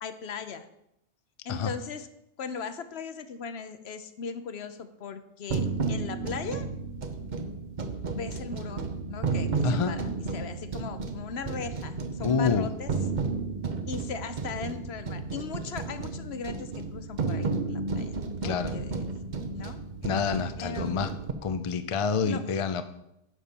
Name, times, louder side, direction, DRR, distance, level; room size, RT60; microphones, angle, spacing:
voice 1, 0.0-0.7 1.4-2.1 2.4-6.7 8.1-8.8 9.1-12.9 13.9-18.1 18.4-19.0 19.5-19.8 20.6-21.0 22.2-22.4, left 6 dB, 65° left, 10 dB, 1.0 m, -38 dB
sound 1, 5.5-21.3, right 4 dB, 45° right, 0.8 m, -33 dB
voice 2, 9.6-9.9 12.2-12.7 18.4-18.7 20.0-21.1 21.4-22.8, left 5 dB, 40° left, 10 dB, 0.5 m, -27 dB
11.0 x 4.2 x 6.9 m, 0.80 s
omnidirectional pair, 1.2 m